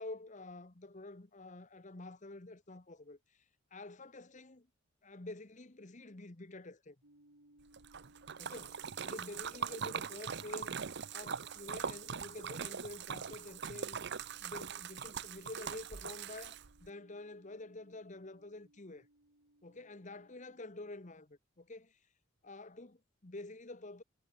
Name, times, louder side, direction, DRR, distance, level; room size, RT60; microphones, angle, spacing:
voice 1, 0.0-3.2 3.7-4.7 5.0-7.0 8.4-10.8 11.1-14.0 14.4-19.1 19.6-22.0 22.4-24.0, left 2 dB, 35° left, 1.1 m, -48 dB
sound 1, 7.0-21.2, right 1 dB, 80° right, 5.1 m, -66 dB
Splash splatter, 7.7-16.9, right 6 dB, 55° right, 0.8 m, -41 dB
head